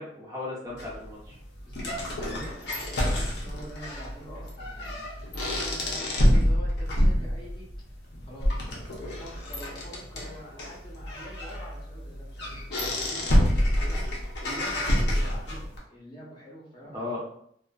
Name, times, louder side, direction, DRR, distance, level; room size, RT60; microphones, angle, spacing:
voice 1, 0.0-1.4 2.2-2.5 16.8-17.2, left 2 dB, 20° right, -5 dB, 0.5 m, -36 dB
sound 1, 0.8-15.8, equal, 75° left, 0.7 m, -27 dB
voice 2, 1.6-2.3 2.9-7.7 8.2-12.5 12.8-17.1, equal, 25° left, -5 dB, 0.7 m, -46 dB
2.6 x 2.3 x 2.3 m, 0.67 s
head